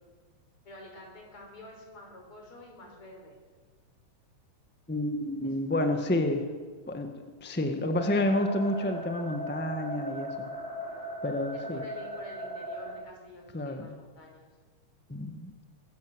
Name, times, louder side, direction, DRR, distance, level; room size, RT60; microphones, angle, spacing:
voice 1, 0.6-3.4 5.4-6.1 11.5-14.5, left 1 dB, 45° left, 0 dB, 6.2 m, -49 dB
voice 2, 4.9-6.5 6.9-10.5 11.2-11.8 13.5-13.9 15.1-15.5, left 1 dB, 10° left, 6 dB, 0.5 m, -29 dB
sound 1, 7.9-13.0, equal, 20° right, 3.5 m, -38 dB
23.5 x 14.5 x 7.9 m, 1.4 s
omnidirectional pair, 3.5 m